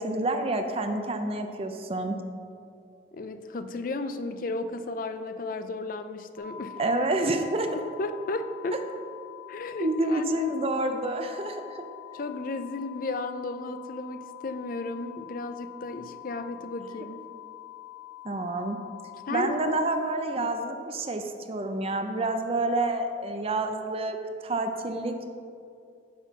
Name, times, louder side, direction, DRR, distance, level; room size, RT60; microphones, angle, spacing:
voice 1, 0.0-2.2 6.8-7.8 9.8-11.8 18.2-18.8 19.3-24.2 24.4-25.3, right 2 dB, 35° right, 6 dB, 0.5 m, -28 dB
voice 2, 3.1-6.8 7.7-8.8 9.5-10.5 12.1-17.2 19.3-19.6 20.4-20.5, left 3 dB, 50° left, 9 dB, 0.4 m, -34 dB
sound 1, 6.4-19.9, left 14 dB, 85° left, 1.6 m, -45 dB
9.5 x 4.3 x 5.9 m, 2.4 s
head